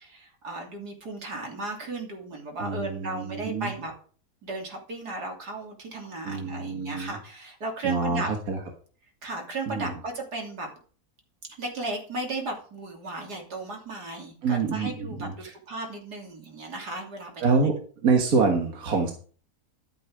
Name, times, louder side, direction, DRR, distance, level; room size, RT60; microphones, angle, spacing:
voice 1, 0.0-3.9 4.4-8.3 9.2-10.7 11.5-17.7, right 2 dB, 85° right, 1 dB, 3.4 m, -35 dB
voice 2, 2.6-3.7 6.2-7.2 7.8-8.6 9.7-9.9 14.4-15.5 17.4-17.7 18.0-19.1, right 4 dB, 65° right, 2 dB, 2.0 m, -26 dB
12.5 x 8.1 x 5.0 m, 0.42 s
omnidirectional pair, 1.7 m